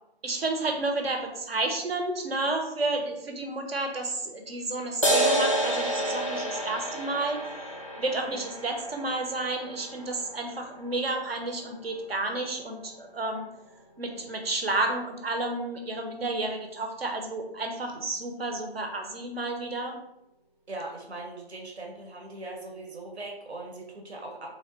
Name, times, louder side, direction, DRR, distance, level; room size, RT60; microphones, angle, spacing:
voice 1, 0.2-7.6 8.0-13.5 14.0-20.0, right 2 dB, 70° right, 4 dB, 1.1 m, -31 dB
sound 1, 5.0-12.0, right 1 dB, 35° left, 0.4 m, -30 dB
voice 2, 8.2-8.5 20.7-24.5, right 2 dB, 85° right, 0 dB, 1.3 m, -40 dB
3.5 x 3.5 x 3.9 m, 0.86 s
hypercardioid pair, 175°, 32 cm